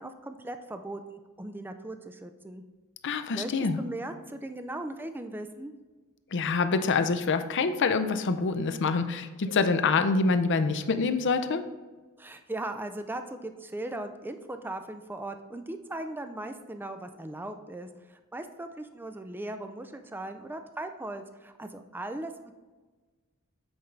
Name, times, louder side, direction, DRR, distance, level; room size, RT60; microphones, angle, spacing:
voice 1, 0.0-2.6 3.3-3.5 3.8-5.7 12.2-22.6, right 1 dB, 10° right, 8 dB, 0.4 m, -38 dB
voice 2, 3.0-3.8 6.3-11.6, left 4 dB, 55° left, 9 dB, 0.5 m, -26 dB
8.0 x 5.3 x 3.3 m, 1.3 s
head